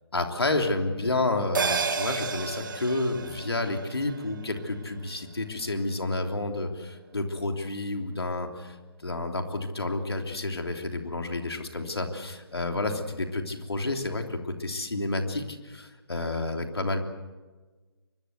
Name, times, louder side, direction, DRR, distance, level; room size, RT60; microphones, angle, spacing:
voice 1, 0.1-8.7 9.0-17.0, left 2 dB, 75° left, 4 dB, 3.3 m, -30 dB
sound 1, 1.5-6.3 6.6-6.7, right 5 dB, 50° right, 1.9 m, -33 dB
24.5 x 23.0 x 8.2 m, 1.3 s
figure-of-eight pair, 140°, 13 cm